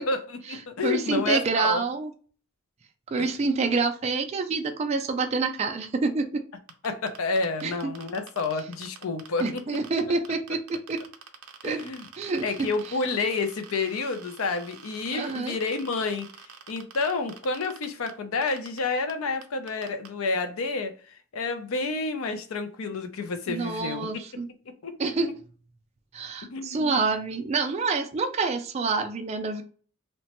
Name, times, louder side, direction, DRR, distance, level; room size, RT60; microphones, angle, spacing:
voice 1, 0.0-1.8 3.2-3.3 6.8-9.8 11.6-12.1 12.4-24.1 24.8-25.0 26.5-26.9, left 3 dB, 75° left, 9 dB, 0.5 m, -29 dB
voice 2, 0.8-2.1 3.1-6.4 7.6-7.9 9.4-11.0 11.6-11.8 12.2-12.7 15.1-15.6 23.5-24.5 25.0-25.3 26.1-29.6, right 4 dB, 30° right, 5 dB, 0.3 m, -27 dB
sound 1, 6.7-10.0 10.2-18.1 18.4-18.8 19.1-19.2 19.4-20.1, right 7 dB, 80° right, 0.5 m, -46 dB
2.9 x 2.1 x 2.8 m, 0.41 s
head